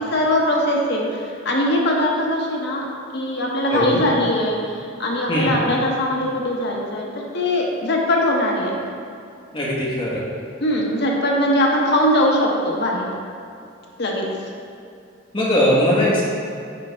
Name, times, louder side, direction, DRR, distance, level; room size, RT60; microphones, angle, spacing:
voice 1, 0.0-2.9 3.1-4.7 5.0-8.8 10.6-13.1 14.0-14.3, left 1 dB, 55° left, -1 dB, 0.9 m, -21 dB
voice 2, 3.7-4.0 5.3-5.5 9.5-10.2 15.3-16.2, left 1 dB, 25° left, -6 dB, 1.3 m, -19 dB
9.2 x 3.4 x 3.4 m, 2.5 s
head